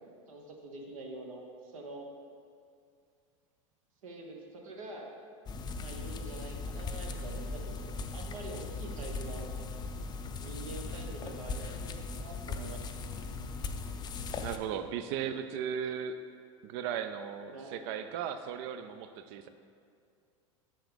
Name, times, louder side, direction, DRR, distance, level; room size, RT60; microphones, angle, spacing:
voice 1, 0.3-1.5 1.7-2.1 4.0-5.1 5.8-9.5 10.4-13.0 17.5-17.7, right 2 dB, 75° right, 1 dB, 1.2 m, -45 dB
sound 1, 5.5-14.6, left 3 dB, 25° left, 0.4 m, -38 dB
voice 2, 14.4-16.2 16.6-19.5, right 8 dB, 55° right, 10 dB, 0.4 m, -36 dB
7.3 x 5.6 x 3.5 m, 2.3 s
hypercardioid pair, 95°, 17 cm